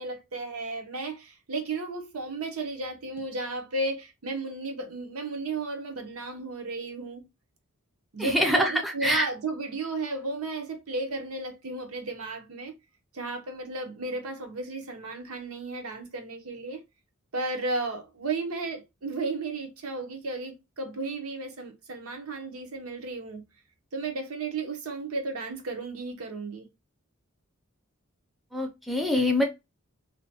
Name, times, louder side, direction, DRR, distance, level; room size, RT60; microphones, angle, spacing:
voice 1, 0.0-7.2 8.1-12.7 13.1-16.8 17.3-23.4 23.9-26.7, right 3 dB, 90° right, 0.8 m, -34 dB
voice 2, 8.2-9.3 28.5-29.4, left 1 dB, ahead, 0.4 m, -25 dB
2.7 x 2.1 x 2.7 m
head